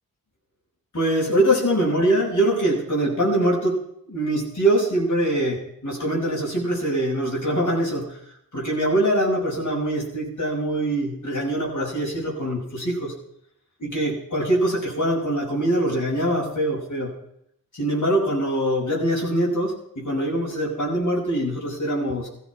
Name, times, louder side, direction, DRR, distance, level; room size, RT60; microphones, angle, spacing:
voice 1, 0.9-8.2 8.5-13.1 13.8-17.1 17.7-22.3, right 1 dB, 55° left, -3 dB, 6.4 m, -23 dB
16.0 x 14.5 x 4.8 m, 0.72 s
cardioid pair, 50°, 37 cm